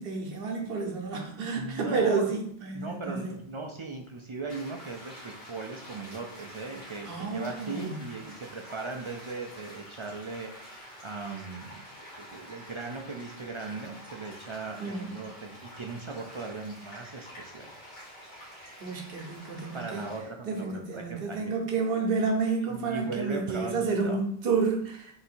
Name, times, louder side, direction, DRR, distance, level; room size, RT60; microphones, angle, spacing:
voice 1, 0.0-3.3 7.1-8.0 14.8-15.1 18.8-20.1 20.4-25.2, right 4 dB, 65° right, 2 dB, 1.0 m, -30 dB
voice 2, 1.5-2.3 2.7-11.8 12.3-17.7 19.7-21.6 22.7-24.2, right 3 dB, 50° right, 2 dB, 0.3 m, -38 dB
sound 1, 4.5-20.2, equal, 65° left, 1.7 m, -48 dB
3.9 x 2.7 x 4.3 m, 0.64 s
omnidirectional pair, 1.0 m